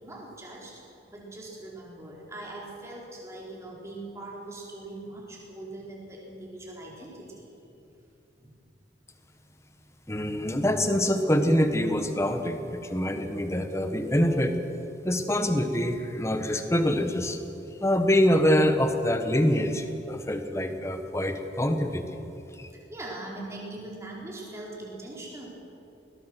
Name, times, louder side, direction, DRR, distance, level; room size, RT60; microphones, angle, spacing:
voice 1, 0.0-0.8 1.1-7.5 8.4-8.5 22.7-25.5, right 2 dB, 15° right, -3 dB, 4.6 m, -41 dB
voice 2, 10.1-14.6 15.0-17.4 17.8-22.2 22.6-22.7, equal, 15° left, 7 dB, 1.3 m, -25 dB
21.5 x 20.5 x 6.2 m, 2.8 s
head